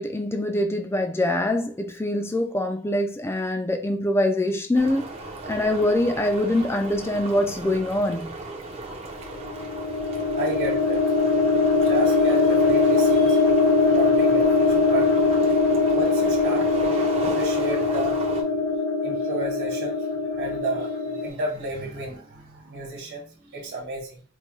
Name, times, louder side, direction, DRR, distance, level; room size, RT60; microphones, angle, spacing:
voice 1, 0.0-5.1 5.5-8.4, left 1 dB, 10° left, 0.4 m, -24 dB
sound 1, 4.7-18.4, right 2 dB, 30° right, 0.6 m, -36 dB
sound 2, 9.4-21.3, left 3 dB, 75° left, 0.6 m, -21 dB
voice 2, 10.4-11.0 11.8-13.4 13.9-15.2 15.9-18.2 19.0-20.1 20.3-24.2, right 2 dB, 50° right, 1.3 m, -32 dB
4.5 x 2.2 x 3.0 m
head